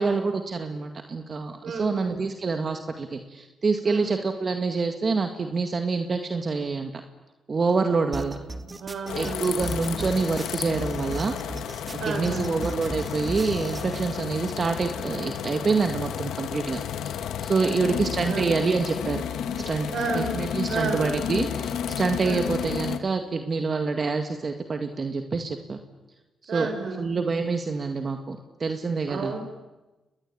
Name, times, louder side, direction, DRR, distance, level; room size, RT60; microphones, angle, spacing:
voice 1, 0.0-6.9 7.5-8.4 9.2-11.4 12.1-17.2 17.4-19.2 19.7-19.9 20.2-25.8 26.4-26.7 27.0-29.3, right 4 dB, 45° right, 5 dB, 2.0 m, -26 dB
voice 2, 1.6-2.3 3.8-4.2 7.9-8.0 8.6-9.5 12.0-12.6 17.6-18.6 19.9-21.3 22.2-22.5 26.5-27.1 29.1-29.4, right 4 dB, 70° right, 7 dB, 5.7 m, -32 dB
sound 1, 8.1-14.1, right 2 dB, 25° right, 2.2 m, -37 dB
sound 2, 9.1-23.0, left 8 dB, 90° left, 1.4 m, -32 dB
29.0 x 21.0 x 8.8 m, 1.1 s
cardioid pair, 70°, 0 cm